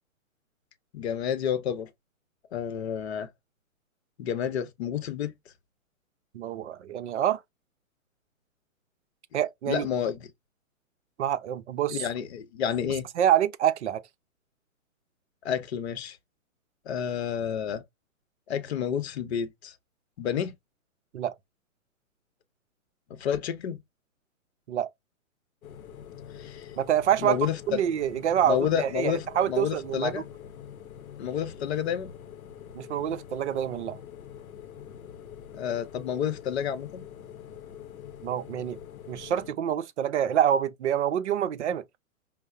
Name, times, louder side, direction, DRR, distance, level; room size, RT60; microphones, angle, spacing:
voice 1, 0.9-1.9 2.5-3.3 4.2-5.3 9.7-10.2 11.9-13.0 15.4-16.2 16.9-17.8 18.5-19.7 20.2-20.6 23.1-23.8 26.4-26.7 27.2-27.8 28.5-30.2 31.2-32.1 35.5-37.0, left 8 dB, 50° left, 0.7 m, -30 dB
voice 2, 6.3-7.4 9.3-9.9 11.2-12.1 13.2-14.0 21.1-21.4 24.7-24.9 26.8-27.4 27.7-30.2 32.7-34.0 38.2-38.8 39.1-41.8, right 10 dB, 55° right, 0.5 m, -26 dB
sound 1, 25.6-39.5, left 9 dB, 85° left, 0.7 m, -45 dB
5.4 x 2.0 x 2.2 m
hypercardioid pair, 135°, 41 cm